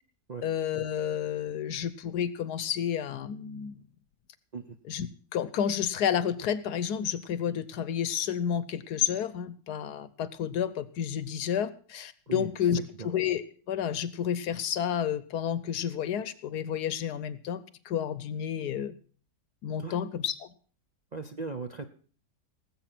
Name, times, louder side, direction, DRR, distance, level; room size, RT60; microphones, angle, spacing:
voice 1, 0.4-3.8 4.9-5.1 5.3-12.8 13.0-18.9 19.6-20.5, left 9 dB, 70° left, 16 dB, 1.3 m, -30 dB
voice 2, 21.1-21.8, right 4 dB, 40° right, 5 dB, 0.6 m, -37 dB
18.5 x 7.7 x 5.9 m, 0.42 s
omnidirectional pair, 1.8 m